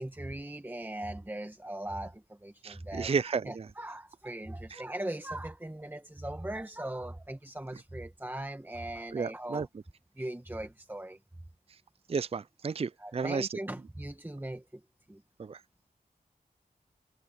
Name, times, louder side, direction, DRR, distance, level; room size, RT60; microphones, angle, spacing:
voice 1, 0.0-3.1 3.4-9.7 10.2-11.2 13.0-14.8 15.1-15.2, right 1 dB, 10° right, 1.4 m, -39 dB
voice 2, 2.6-3.7 4.7-4.8 9.1-9.7 12.1-13.6 15.4-15.6, right 5 dB, 40° right, 0.4 m, -32 dB
wide cardioid pair, 60°, 16 cm